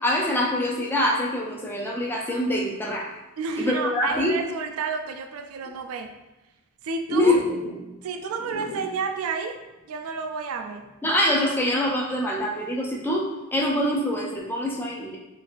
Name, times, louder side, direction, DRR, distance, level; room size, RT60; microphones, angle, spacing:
voice 1, 0.0-3.1 3.6-4.4 7.1-7.4 11.0-15.2, left 1 dB, 10° left, -2 dB, 0.4 m, -24 dB
voice 2, 3.4-6.1 6.8-7.4 8.0-9.6 9.9-10.9, right 5 dB, 75° right, 6 dB, 0.3 m, -30 dB
sound 1, 7.0-8.0 8.3-9.1 9.5-9.6 10.0-10.1 10.6-12.0 12.4-13.0, equal, 90° left, 0.7 m, -40 dB
3.2 x 2.5 x 2.4 m, 1.0 s
head